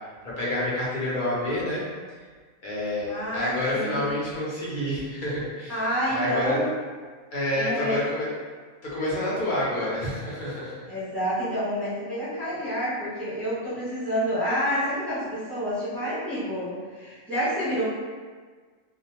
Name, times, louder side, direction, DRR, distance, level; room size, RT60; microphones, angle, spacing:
voice 1, 0.2-1.8 2.6-5.8 6.1-6.6 7.3-8.3 8.8-10.8, left 1 dB, 45° left, -7 dB, 0.8 m, -28 dB
voice 2, 3.1-4.1 5.7-6.7 7.5-8.0 10.9-17.8, equal, ahead, -14 dB, 1.2 m, -28 dB
2.4 x 2.2 x 2.8 m, 1.5 s
omnidirectional pair, 1.4 m